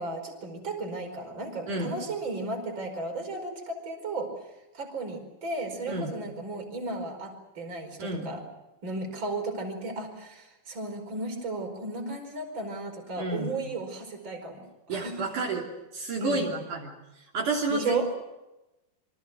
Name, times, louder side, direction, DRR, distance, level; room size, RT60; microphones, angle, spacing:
voice 1, 0.0-4.3 4.7-8.4 8.8-15.2 16.2-16.5 17.7-18.1, right 2 dB, 30° right, 4 dB, 5.5 m, -34 dB
voice 2, 13.2-13.5 14.9-15.7 15.9-16.9 17.3-18.1, right 2 dB, 60° right, -2 dB, 4.6 m, -30 dB
28.0 x 25.0 x 6.3 m, 0.97 s
omnidirectional pair, 4.1 m